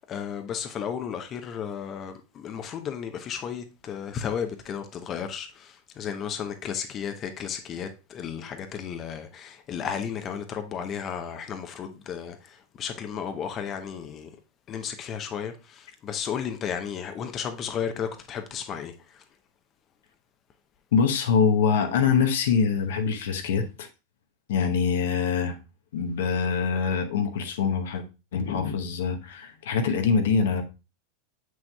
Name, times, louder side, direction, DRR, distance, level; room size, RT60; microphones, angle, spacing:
voice 1, 0.1-12.4 12.8-14.3 14.7-18.9, left 7 dB, 35° left, 0.8 m, -33 dB
voice 2, 20.9-23.9 24.5-25.6 25.9-28.0 28.3-30.6, left 6 dB, 70° left, 0.9 m, -24 dB
7.3 x 6.2 x 2.3 m
hypercardioid pair, 90°, 0 cm